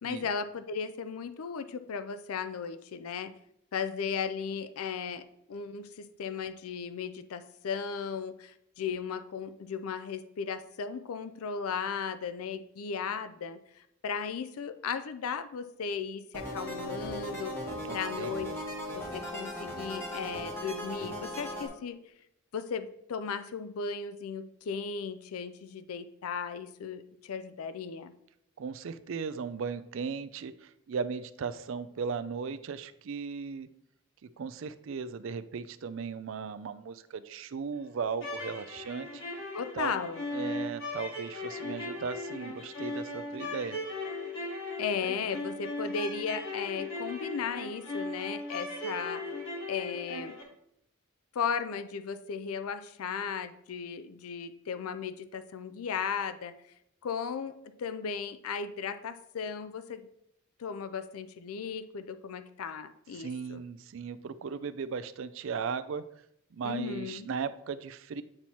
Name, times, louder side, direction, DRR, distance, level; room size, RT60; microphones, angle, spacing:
voice 1, 0.0-3.3 3.7-17.6 17.9-18.5 18.9-22.0 22.5-28.1 39.5-40.2 44.8-49.2 49.7-50.4 51.3-56.5 57.0-60.1 60.6-63.6 66.6-67.3, left 6 dB, 75° left, 10 dB, 0.4 m, -36 dB
sound 1, 16.3-21.7, equal, 10° left, 1.3 m, -38 dB
voice 2, 17.9-18.4 28.6-33.7 34.2-39.2 39.8-39.9 40.3-43.8 63.1-66.0 66.5-68.2, right 5 dB, 60° right, 14 dB, 0.4 m, -37 dB
sound 2, 38.1-50.4, left 2 dB, 60° left, 1.4 m, -38 dB
8.7 x 3.0 x 4.2 m, 0.76 s
head